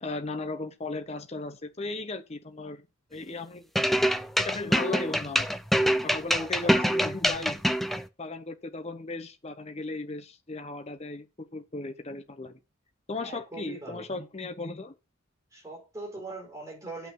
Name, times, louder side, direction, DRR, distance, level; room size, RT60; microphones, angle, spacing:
voice 1, 0.0-2.8 3.1-3.7 4.4-5.5 6.0-7.6 8.2-12.6 13.1-15.0, left 3 dB, 30° left, 0.8 m, -36 dB
sound 1, 3.7-8.0, equal, ahead, 0.5 m, -25 dB
voice 2, 6.3-6.8 13.2-14.1 15.5-17.1, right 2 dB, 15° right, 4.6 m, -41 dB
9.0 x 5.8 x 5.9 m
head